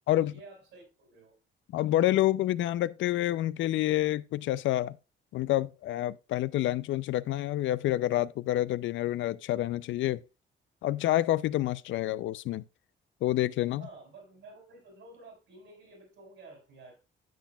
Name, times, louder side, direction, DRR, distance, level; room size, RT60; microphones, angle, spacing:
voice 1, 0.2-1.3 13.7-17.0, right 3 dB, 75° right, 5.5 m, -51 dB
voice 2, 1.7-5.0 5.3-10.2 10.8-12.6 13.2-13.8, left 14 dB, 75° left, 0.4 m, -28 dB
10.5 x 7.3 x 2.2 m
cardioid pair, 90°, 20 cm